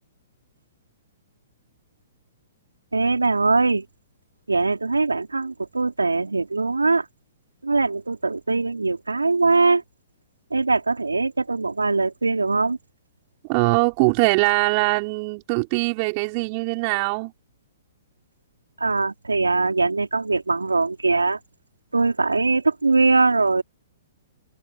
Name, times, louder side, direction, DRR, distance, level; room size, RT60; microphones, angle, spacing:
voice 1, 2.9-3.9 4.5-7.1 7.6-9.8 10.5-12.8 18.8-21.4 21.9-23.6, right 3 dB, 85° right, 3.8 m, -21 dB
voice 2, 13.4-17.3, right 31 dB, 40° right, 4.6 m, -22 dB
figure-of-eight pair, 115°, 0 cm